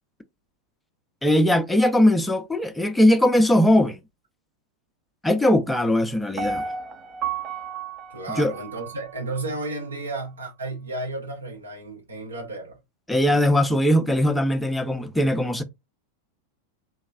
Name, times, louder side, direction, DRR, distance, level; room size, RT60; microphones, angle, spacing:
voice 1, 1.2-4.0 5.2-6.6 8.4-8.5 13.1-15.6, left 1 dB, 5° left, 0.6 m, -20 dB
Piano, 6.4-9.4 9.9-10.0, right 5 dB, 30° right, 0.6 m, -32 dB
voice 2, 8.1-12.8, right 2 dB, 75° right, 1.2 m, -33 dB
4.1 x 3.1 x 2.4 m
figure-of-eight pair, 90°, 0 cm